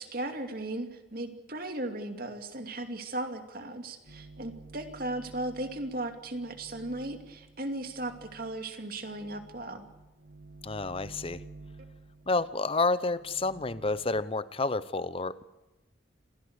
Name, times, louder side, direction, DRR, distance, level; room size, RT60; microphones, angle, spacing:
voice 1, 0.0-9.9, right 1 dB, 50° right, 6 dB, 2.6 m, -36 dB
sound 1, 4.1-14.2, right 3 dB, 80° right, 2.0 m, -51 dB
voice 2, 10.6-11.4 12.3-15.4, left 3 dB, 30° left, 16 dB, 0.8 m, -29 dB
27.0 x 17.0 x 8.1 m, 1.0 s
head